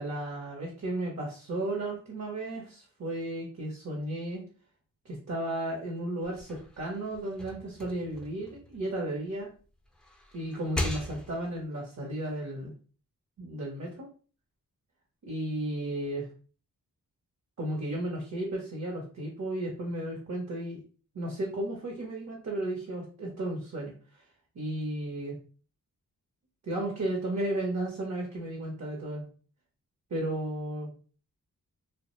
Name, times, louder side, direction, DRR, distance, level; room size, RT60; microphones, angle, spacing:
voice 1, 0.0-4.4 5.0-9.5 10.3-12.7 13.4-14.1 15.2-16.3 17.6-20.8 21.1-24.2 24.5-25.4 26.6-29.3 30.1-30.9, right 1 dB, 50° right, -2 dB, 0.8 m, -34 dB
sound 1, 6.2-9.4 9.8-11.6, left 2 dB, ahead, 0.5 m, -39 dB
2.4 x 2.1 x 3.0 m, 0.39 s
cardioid pair, 70°, 35 cm